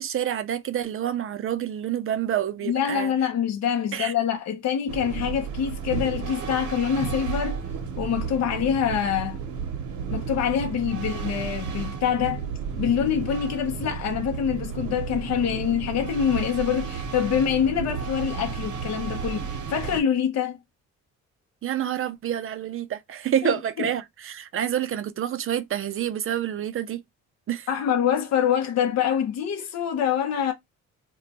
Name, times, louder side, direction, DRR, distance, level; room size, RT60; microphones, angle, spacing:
voice 1, 0.0-3.1 3.9-4.1 21.6-27.0 27.5-27.7, right 10 dB, 45° right, 0.5 m, -28 dB
voice 2, 2.6-7.6 8.0-9.4 10.1-12.5 12.7-20.6 23.4-23.9 27.7-30.5, left 8 dB, 60° left, 0.6 m, -25 dB
sound 1, 4.9-20.0, right 6 dB, 80° right, 0.8 m, -32 dB
2.2 x 2.2 x 3.9 m
cardioid pair, 90°, 30 cm